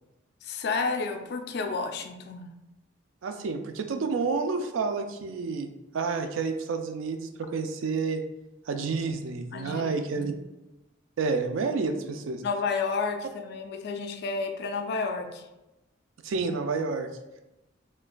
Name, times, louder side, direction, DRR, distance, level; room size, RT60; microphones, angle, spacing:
voice 1, 0.4-2.5 9.5-10.3 12.4-15.5, left 4 dB, 55° left, 6 dB, 0.3 m, -31 dB
voice 2, 3.2-5.7 5.9-8.2 8.7-10.3 11.2-12.4 16.2-17.1, right 4 dB, 80° right, 7 dB, 0.4 m, -29 dB
4.3 x 2.4 x 2.2 m, 0.96 s
head